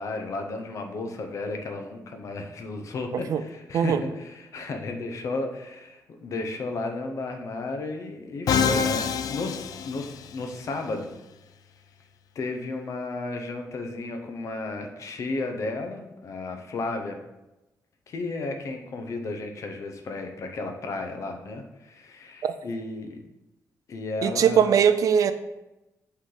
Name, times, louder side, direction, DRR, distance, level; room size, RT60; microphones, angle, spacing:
voice 1, 0.0-11.2 12.3-17.2 18.1-23.2 23.9-24.7, left 3 dB, 50° left, 5 dB, 0.8 m, -33 dB
Musical instrument, 8.5-10.6, left 7 dB, 70° left, 0.3 m, -26 dB
voice 2, 24.2-25.3, right 8 dB, 60° right, 11 dB, 0.4 m, -20 dB
8.2 x 3.3 x 3.8 m, 0.99 s
wide cardioid pair, 155°, 7 cm